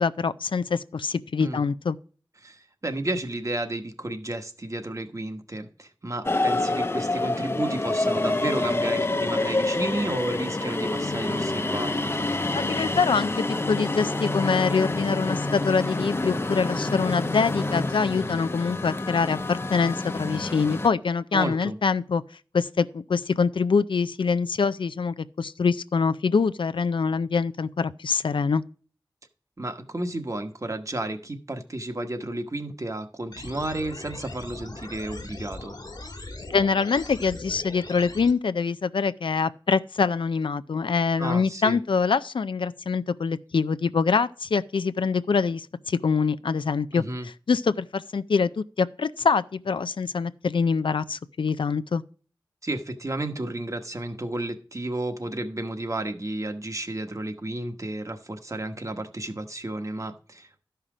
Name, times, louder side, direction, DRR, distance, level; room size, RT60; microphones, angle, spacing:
voice 1, 0.0-2.0 12.5-22.2 22.5-28.6 36.4-52.0, left 5 dB, 85° left, 0.4 m, -25 dB
voice 2, 2.4-12.1 21.3-21.8 29.6-35.8 41.2-41.8 46.9-47.3 52.6-60.7, right 1 dB, 40° right, 1.2 m, -32 dB
sound 1, 6.2-20.9, left 2 dB, 30° left, 0.6 m, -27 dB
sound 2, 33.3-38.3, left 2 dB, 55° left, 1.5 m, -40 dB
12.5 x 5.7 x 4.9 m
wide cardioid pair, 65°, 8 cm